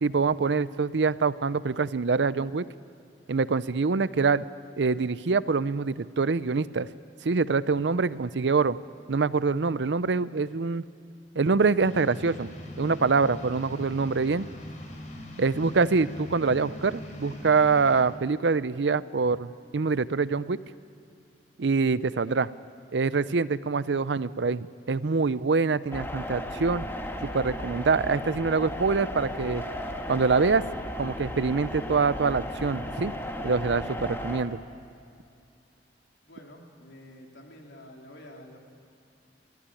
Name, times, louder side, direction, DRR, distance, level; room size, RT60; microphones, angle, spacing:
voice 1, 0.0-2.6 3.3-4.4 4.8-6.9 7.2-8.8 9.1-10.8 11.3-12.5 12.8-14.5 15.4-19.5 19.7-20.6 21.6-22.5 22.9-26.9 27.2-29.6 30.1-30.6 31.0-33.1 33.4-34.6, right 4 dB, 75° right, 16 dB, 0.6 m, -25 dB
sound 1, 11.8-18.0, left 1 dB, 45° left, 3.7 m, -41 dB
sound 2, 25.9-34.4, left 1 dB, 15° left, 1.5 m, -35 dB
voice 2, 36.3-38.6, left 1 dB, 85° left, 0 dB, 3.5 m, -48 dB
27.0 x 14.5 x 9.9 m, 2.5 s
head